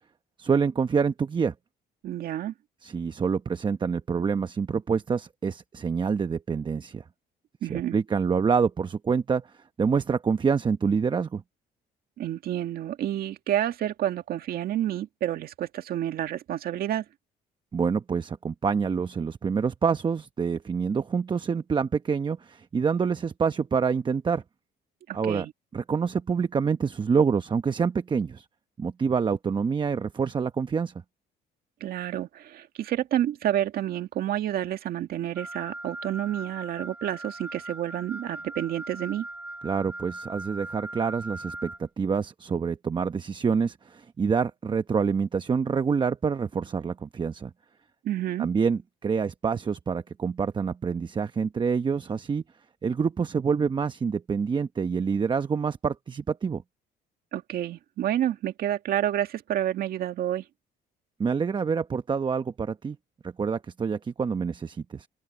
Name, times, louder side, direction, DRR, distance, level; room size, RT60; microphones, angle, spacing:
voice 1, 0.4-1.5 2.8-7.0 7.7-9.5 9.8-11.4 17.7-24.4 25.1-25.5 25.7-28.5 28.8-30.9 39.6-47.5 48.4-52.4 52.8-56.6 61.2-63.0 63.2-65.1, right 6 dB, 25° right, 0.9 m, -26 dB
voice 2, 2.0-2.5 7.6-8.0 12.2-17.1 25.1-25.5 31.8-39.3 48.0-48.5 57.3-60.5, right 11 dB, 65° right, 1.9 m, -29 dB
Wind instrument woodwind instrument, 35.3-41.8, right 2 dB, 10° right, 3.2 m, -40 dB
open air
cardioid pair, 110°, 17 cm